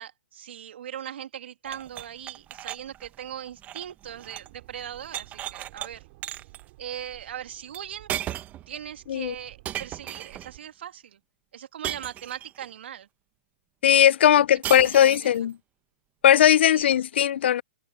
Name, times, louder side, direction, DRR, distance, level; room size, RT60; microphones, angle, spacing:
voice 1, 0.0-6.0 6.8-8.1 8.7-11.2 11.5-13.1 14.3-14.4 14.8-15.5 16.7-16.9, right 10 dB, 65° right, 2.7 m, -39 dB
sound 1, 1.6-4.6 4.8-5.9 6.2-6.6 7.7-7.8 8.1-8.7 9.6-10.5 11.8-12.7 14.6-15.4, right 12 dB, 25° right, 1.3 m, -36 dB
sound 2, 4.0-10.6, right 23 dB, 45° right, 4.9 m, -54 dB
voice 2, 13.8-15.6 16.2-17.6, left 10 dB, 60° left, 0.5 m, -18 dB
hypercardioid pair, 125°, 7 cm